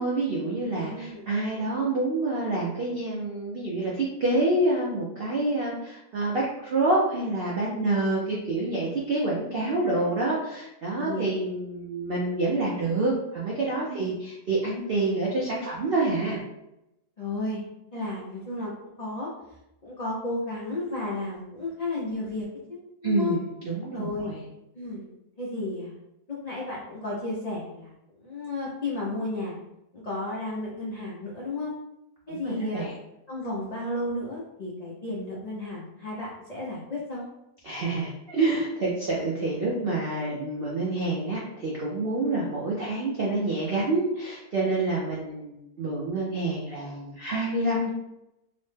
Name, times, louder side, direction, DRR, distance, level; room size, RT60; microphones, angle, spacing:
voice 1, 0.0-16.4 23.0-24.4 32.3-32.9 37.6-47.9, right 2 dB, 75° right, -5 dB, 0.5 m, -27 dB
voice 2, 0.7-1.3 9.8-10.1 11.0-11.3 13.9-14.1 17.2-17.6 17.9-18.7 19.0-19.3 19.8-23.4 23.9-24.3 24.7-25.1 25.4-26.0 26.3-27.9 28.2-29.6 29.9-31.7 32.3-32.8 33.3-37.3 42.1-42.2, left 2 dB, 80° left, -7 dB, 0.3 m, -33 dB
3.0 x 2.1 x 3.2 m, 0.86 s
omnidirectional pair, 1.7 m